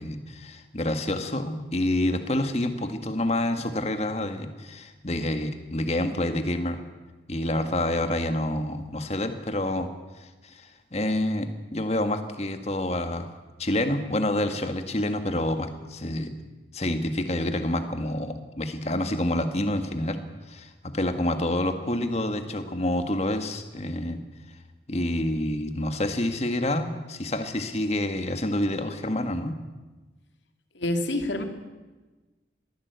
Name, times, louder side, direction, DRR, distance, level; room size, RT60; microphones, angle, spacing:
voice 1, 0.0-6.8 7.3-9.9 10.2-16.3 16.7-20.2 20.5-24.2 24.9-29.6, left 1 dB, 35° left, 8 dB, 1.8 m, -28 dB
voice 2, 30.7-31.4, left 1 dB, 80° left, 6 dB, 2.5 m, -27 dB
22.5 x 15.5 x 8.2 m, 1.2 s
head